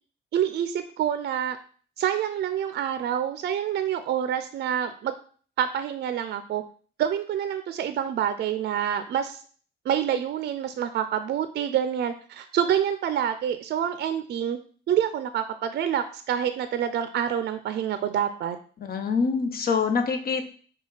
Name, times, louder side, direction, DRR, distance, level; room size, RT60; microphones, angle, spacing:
voice 1, 0.3-1.6 2.0-5.1 5.6-6.6 7.0-9.4 9.9-14.6 14.9-18.6, right 9 dB, 55° right, 10 dB, 0.4 m, -27 dB
voice 2, 18.8-20.5, left 5 dB, 50° left, 7 dB, 0.7 m, -25 dB
5.1 x 2.3 x 3.8 m, 0.43 s
cardioid pair, 90°, 20 cm